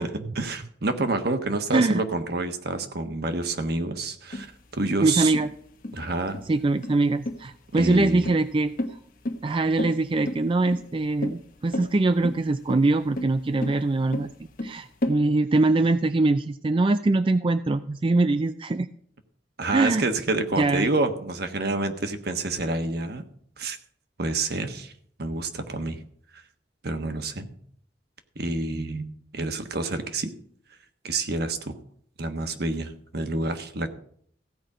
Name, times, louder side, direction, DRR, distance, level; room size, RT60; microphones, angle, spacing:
voice 1, 0.0-4.5 4.7-5.3 5.9-6.4 7.7-8.3 19.6-23.2 23.6-23.8 24.2-24.9 25.2-26.0 26.8-27.5 28.3-30.3 31.0-31.7 32.2-33.9, right 2 dB, 60° right, 7 dB, 1.3 m, -28 dB
sound 1, 4.3-15.2, left 1 dB, 50° left, 1.2 m, -33 dB
voice 2, 5.0-5.5 6.5-8.7 9.4-14.3 14.6-18.9 19.7-20.0 20.6-20.9, right 2 dB, 30° right, 11 dB, 0.4 m, -23 dB
15.5 x 5.2 x 8.6 m, 0.62 s
head